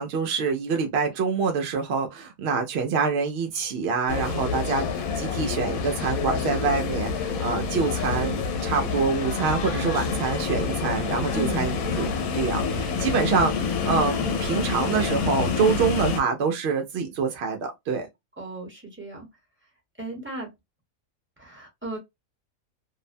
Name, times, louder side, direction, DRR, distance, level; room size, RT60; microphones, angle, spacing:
voice 1, 0.0-18.1, right 5 dB, 65° right, 0.6 m, -26 dB
sound 1, 4.1-16.2, left 5 dB, 90° left, 1.1 m, -27 dB
voice 2, 11.3-11.7 18.4-19.3 20.0-20.5 21.4-22.0, right 3 dB, 10° right, 0.8 m, -35 dB
2.6 x 2.1 x 2.5 m
omnidirectional pair, 1.5 m